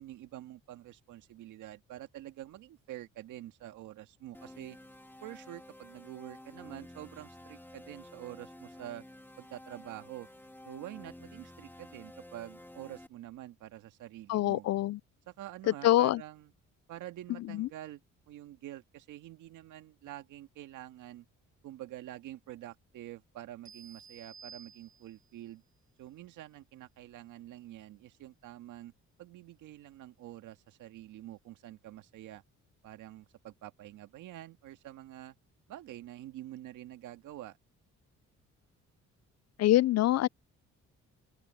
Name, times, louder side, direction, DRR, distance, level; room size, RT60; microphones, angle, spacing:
voice 1, 0.0-4.8 5.2-9.0 9.4-10.3 10.6-14.7 15.3-16.5 16.9-18.0 18.3-21.3 21.6-25.6 26.0-28.9 29.2-32.4 32.8-35.4 35.7-37.6, right 14 dB, 85° right, 1.9 m, -47 dB
sound 1, 4.3-13.1, left 1 dB, 5° left, 2.7 m, -51 dB
voice 2, 14.3-15.0 15.8-16.2 17.5-17.7 39.6-40.3, left 14 dB, 60° left, 0.4 m, -25 dB
sound 2, 23.7-25.4, right 6 dB, 40° right, 2.2 m, -53 dB
open air
cardioid pair, 90°, 30 cm